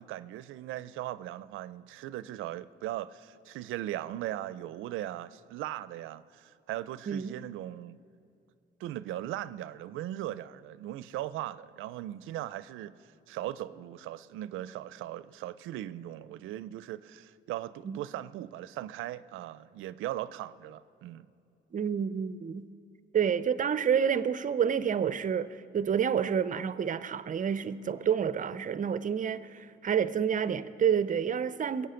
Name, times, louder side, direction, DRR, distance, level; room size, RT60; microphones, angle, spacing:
voice 1, 0.0-8.0 8.8-21.3, right 13 dB, 90° right, 0.5 m, -39 dB
voice 2, 7.1-7.4 17.8-18.0 21.7-22.7 23.1-31.9, right 8 dB, 40° right, 0.6 m, -29 dB
21.0 x 8.3 x 5.7 m
cardioid pair, 90°, 20 cm